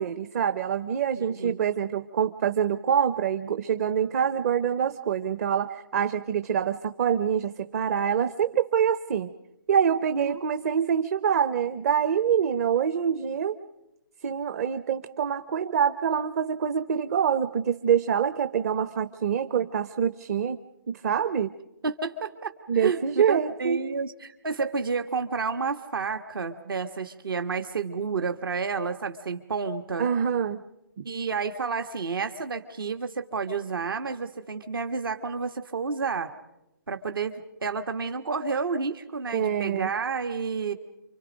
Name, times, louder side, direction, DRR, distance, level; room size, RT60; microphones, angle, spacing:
voice 1, 0.0-9.3 9.7-13.6 14.2-20.6 20.9-21.5 22.7-23.8 30.0-30.6 39.3-39.9, right 8 dB, 40° right, 11 dB, 0.8 m, -25 dB
voice 2, 1.1-1.6 10.1-10.4 21.8-23.0 23.3-30.1 31.0-36.3 36.9-40.7, right 5 dB, 75° right, 7 dB, 1.6 m, -30 dB
28.5 x 25.5 x 5.1 m, 0.91 s
figure-of-eight pair, 145°, 12 cm